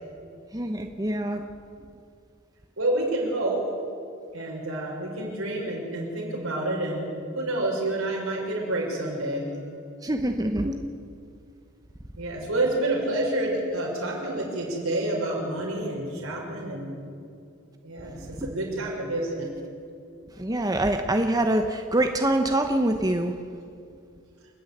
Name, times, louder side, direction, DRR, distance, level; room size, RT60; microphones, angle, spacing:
voice 1, 0.5-1.4 10.0-10.9 18.4-18.5 20.4-23.3, right 1 dB, 15° right, 5 dB, 0.8 m, -25 dB
voice 2, 2.8-3.6 4.3-7.1 7.3-9.5 12.2-16.9 17.8-19.5, right 1 dB, 75° right, -2 dB, 6.1 m, -28 dB
29.0 x 10.5 x 9.3 m, 2.4 s
head